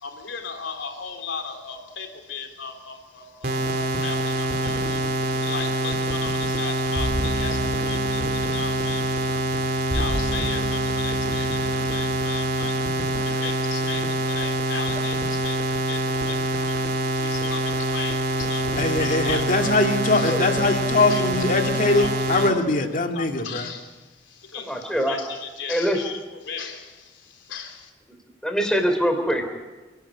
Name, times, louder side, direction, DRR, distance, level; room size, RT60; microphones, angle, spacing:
voice 1, 0.0-5.0 5.4-7.6 7.9-8.2 8.5-9.0 9.3-9.4 9.9-11.5 11.9-12.7 13.4-15.2 15.4-15.6 15.9-16.7 17.2-17.6 17.9-18.2 18.5-18.6 19.0-19.4 20.2-20.4 21.1-21.2 22.0-22.4 23.2-23.8 24.5-24.6 25.1-25.2 25.6-26.1 26.5-26.8 27.5-27.8, left 6 dB, 90° left, 4 dB, 3.7 m, -35 dB
sound 1, 3.4-22.5, right 1 dB, 50° right, 2.6 m, -25 dB
sound 2, 6.9-12.6, equal, 25° right, 5.8 m, -33 dB
voice 2, 18.8-23.7, left 2 dB, 45° left, 4 dB, 2.1 m, -22 dB
voice 3, 24.6-25.2 25.7-26.0 28.4-29.4, equal, 5° left, 4 dB, 3.2 m, -23 dB
29.5 x 11.5 x 9.8 m, 1.2 s
head